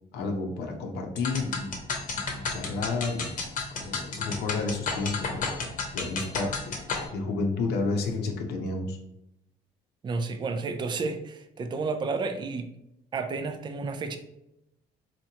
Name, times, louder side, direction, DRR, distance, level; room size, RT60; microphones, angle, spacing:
voice 1, 0.1-1.8 2.1-3.3 3.7-5.5 5.9-6.8 7.1-9.0, left 3 dB, 75° left, 2 dB, 0.7 m, -31 dB
sound 1, 1.2-7.1, left 4 dB, 50° left, 0.9 m, -32 dB
voice 2, 10.0-12.7 13.1-14.2, right 4 dB, 25° right, 8 dB, 0.4 m, -31 dB
4.3 x 3.0 x 2.8 m, 0.83 s
cardioid pair, 110°, 17 cm